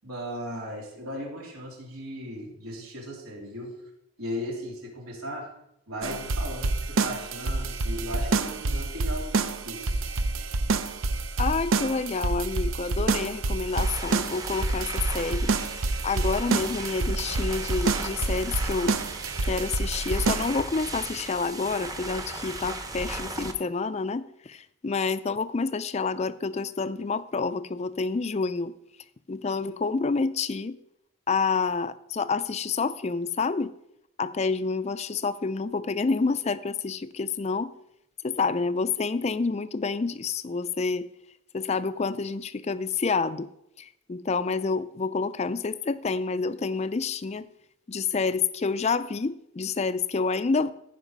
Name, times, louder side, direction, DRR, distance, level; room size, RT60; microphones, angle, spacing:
voice 1, 0.0-3.9 4.2-5.5 5.9-10.0, equal, 90° right, -2 dB, 3.6 m, -37 dB
sound 1, 6.0-20.6, right 3 dB, 70° right, 0.6 m, -28 dB
voice 2, 11.4-15.5 16.0-19.0 19.4-28.7 29.3-30.8 31.3-33.7 34.2-37.7 38.2-41.1 41.5-43.5 43.8-47.5 47.9-50.7, left 4 dB, 30° left, 14 dB, 0.4 m, -28 dB
sound 2, 13.7-23.5, right 2 dB, 15° right, 0.8 m, -37 dB
14.5 x 5.5 x 5.3 m, 0.80 s
head